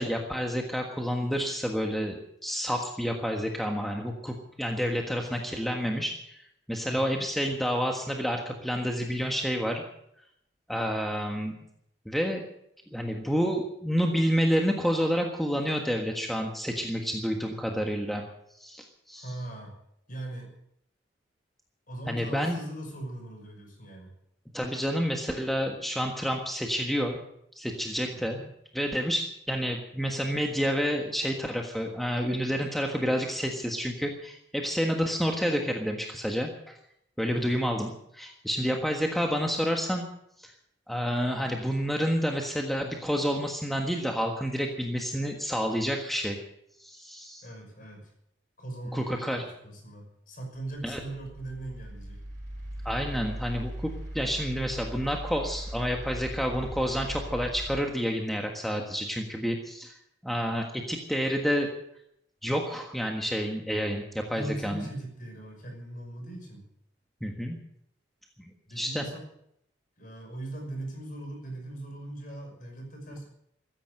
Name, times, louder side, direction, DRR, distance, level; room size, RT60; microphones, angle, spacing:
voice 1, 0.0-6.4 6.7-9.8 10.7-11.6 12.0-12.4 12.9-18.2 18.6-19.3 22.1-22.6 24.5-27.2 27.5-28.4 28.7-36.7 37.2-40.1 40.4-40.5 40.9-46.4 46.8-47.4 48.9-49.4 50.8-51.0 52.8-59.9 60.2-61.7 62.4-64.8 67.2-67.6 68.4-69.0, equal, ahead, 2 dB, 1.5 m, -29 dB
voice 2, 6.9-7.2 19.1-19.8 20.1-20.6 21.9-24.1 28.1-28.4 37.3-37.5 47.4-48.1 48.6-52.2 64.3-66.6 68.7-69.2 70.0-73.3, right 1 dB, 45° left, 2 dB, 5.8 m, -40 dB
sound 1, 50.6-57.8, right 1 dB, 45° right, 6.7 m, -39 dB
15.5 x 14.0 x 6.7 m, 0.74 s
head